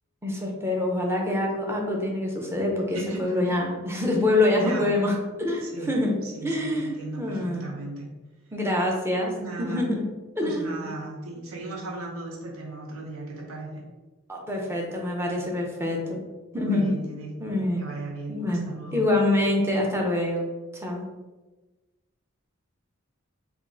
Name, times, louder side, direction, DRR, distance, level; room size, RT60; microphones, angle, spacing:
voice 1, 0.2-6.1 6.4-7.7 8.5-9.3 9.6-10.0 10.4-10.7 14.3-16.2 16.5-16.9 17.4-17.8 18.3-20.5 20.8-21.0, left 1 dB, 10° right, -1 dB, 0.5 m, -25 dB
voice 2, 2.9-3.6 4.6-4.9 5.6-5.9 6.2-8.1 9.4-9.9 10.4-13.9 16.6-17.4 17.8-19.1, right 2 dB, 85° right, 0 dB, 0.8 m, -37 dB
3.5 x 2.3 x 3.7 m, 1.2 s
head